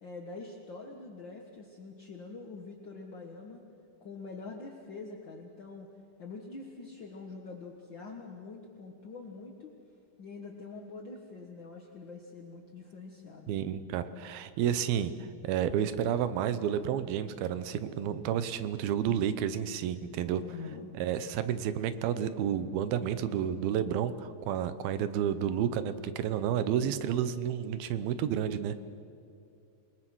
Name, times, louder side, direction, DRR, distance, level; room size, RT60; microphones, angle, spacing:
voice 1, 0.0-3.7 4.0-5.9 6.2-9.7 10.2-13.6 20.4-20.9, left 3 dB, 55° left, 1 dB, 1.3 m, -45 dB
voice 2, 13.5-15.1 15.4-20.4 20.9-28.8, right 9 dB, 85° right, 12 dB, 2.8 m, -30 dB
28.0 x 19.5 x 6.2 m, 2.6 s
omnidirectional pair, 4.3 m